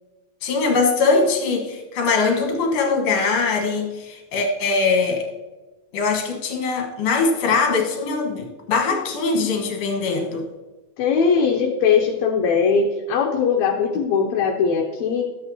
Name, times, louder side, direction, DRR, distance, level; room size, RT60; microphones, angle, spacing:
voice 1, 0.4-5.3 5.9-10.5, left 4 dB, 60° left, 1 dB, 2.2 m, -21 dB
voice 2, 11.0-15.2, left 6 dB, 75° left, 2 dB, 1.8 m, -20 dB
13.0 x 8.0 x 2.8 m, 1.2 s
omnidirectional pair, 3.5 m